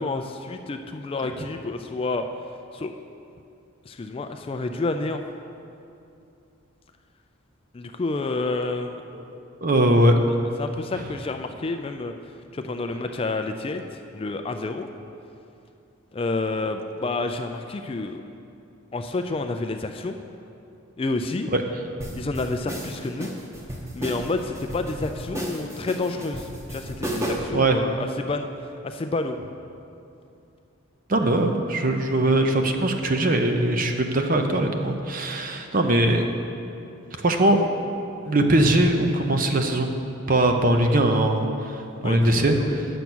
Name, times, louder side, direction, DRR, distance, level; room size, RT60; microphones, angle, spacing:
voice 1, 0.0-2.3 2.7-2.9 3.9-5.2 7.7-9.0 10.6-12.1 12.5-14.9 16.1-18.2 18.9-20.2 21.0-21.5 22.1-23.3 23.9-29.4 42.0-42.8, left 3 dB, 25° left, 6 dB, 0.3 m, -29 dB
voice 2, 9.6-10.2 21.5-21.6 27.5-27.8 31.1-36.2 37.2-37.7 38.3-39.9 40.3-42.9, right 1 dB, 40° right, 5 dB, 0.7 m, -21 dB
sound 1, 22.0-27.6, right 1 dB, 15° right, 0.9 m, -32 dB
9.0 x 7.0 x 6.1 m, 2.7 s
head